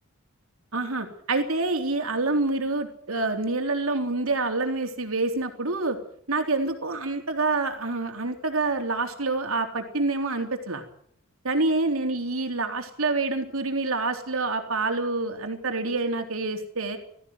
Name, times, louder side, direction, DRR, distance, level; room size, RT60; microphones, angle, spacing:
voice 1, 0.7-6.0 6.3-10.8 11.4-17.0, right 3 dB, 70° right, 5 dB, 3.6 m, -27 dB
20.0 x 14.5 x 9.6 m, 0.66 s
head